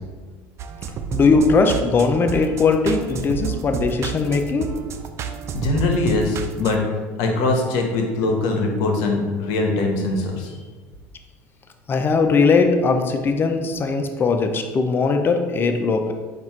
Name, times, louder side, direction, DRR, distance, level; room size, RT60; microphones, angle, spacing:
sound 1, 0.6-6.8, right 6 dB, 45° right, 0.4 m, -30 dB
voice 1, 1.1-4.8 11.9-16.1, left 4 dB, 35° left, 5 dB, 0.5 m, -19 dB
voice 2, 5.5-6.8 7.2-10.5, left 3 dB, 70° left, 2 dB, 0.9 m, -22 dB
4.4 x 2.5 x 4.3 m, 1.4 s
supercardioid pair, 90°, 7 cm